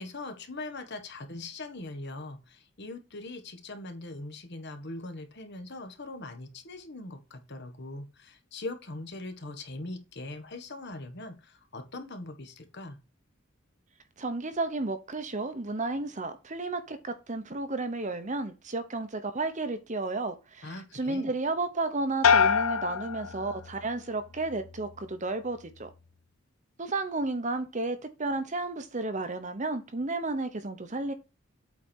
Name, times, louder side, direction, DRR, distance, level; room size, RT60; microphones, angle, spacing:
voice 1, 0.0-13.0 20.6-21.3, left 2 dB, 55° left, 1.4 m, -41 dB
voice 2, 14.2-25.9 26.8-31.1, right 2 dB, 35° right, 1.0 m, -32 dB
sound 1, 22.2-24.0 24.4-25.0, left 6 dB, 85° left, 0.6 m, -26 dB
8.2 x 4.5 x 4.4 m
head